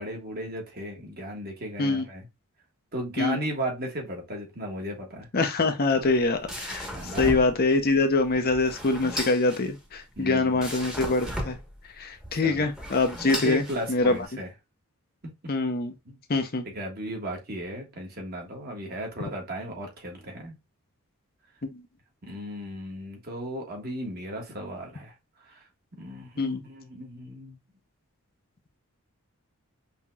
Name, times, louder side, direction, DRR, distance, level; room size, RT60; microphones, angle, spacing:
voice 1, 0.0-2.3 2.9-5.3 6.9-7.4 10.2-10.6 12.3-12.7 13.4-14.5 15.2-15.5 16.0-16.2 16.6-20.6 22.2-25.1 25.4-25.6 26.0-27.6, equal, 45° right, 1.4 m, -35 dB
voice 2, 5.3-11.6 12.0-14.2 15.5-15.9 16.3-16.7 21.7-21.8 26.4-26.6, left 3 dB, 40° left, 0.6 m, -24 dB
sound 1, 5.9-14.2, equal, 5° right, 1.0 m, -37 dB
5.5 x 2.9 x 2.2 m
head